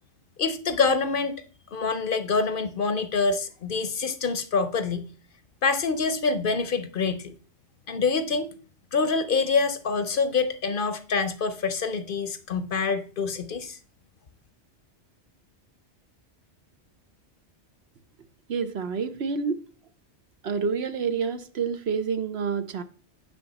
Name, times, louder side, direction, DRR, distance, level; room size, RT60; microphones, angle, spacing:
voice 1, 0.4-1.3 1.7-5.1 5.6-7.3 7.9-8.5 8.9-13.8, left 4 dB, 55° left, 0.8 m, -26 dB
voice 2, 18.5-19.6 20.4-22.8, right 5 dB, 65° right, 1.0 m, -28 dB
9.8 x 5.9 x 4.1 m
omnidirectional pair, 1.2 m